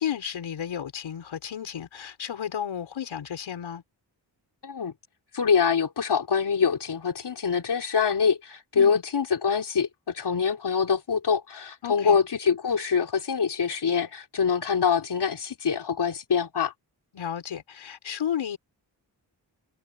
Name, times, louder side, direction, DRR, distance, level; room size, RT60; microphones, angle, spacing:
voice 1, 0.0-3.8 8.7-9.0 11.8-12.2 17.1-18.6, left 9 dB, 85° left, 5.9 m, -33 dB
voice 2, 5.3-16.7, left 6 dB, 60° left, 3.5 m, -25 dB
cardioid pair, 50°, 45 cm